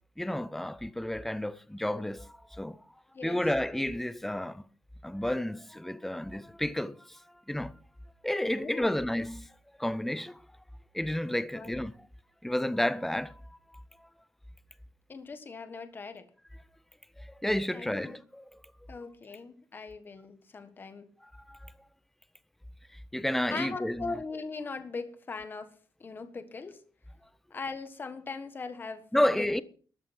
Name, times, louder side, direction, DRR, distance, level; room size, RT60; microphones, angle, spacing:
voice 1, 0.2-2.8 3.2-4.6 5.0-7.2 7.5-7.7 8.2-9.5 9.8-10.4 10.9-11.9 12.4-13.4 17.2-18.4 21.4-21.7 23.1-24.1 29.1-29.6, left 1 dB, 5° left, 0.6 m, -31 dB
voice 2, 8.6-8.9 11.5-11.9 15.1-16.2 17.7-18.2 18.9-21.1 23.5-25.7 26.0-26.8 27.5-29.6, left 4 dB, 30° left, 1.5 m, -40 dB
13.5 x 11.0 x 6.1 m
wide cardioid pair, 175°, 7 cm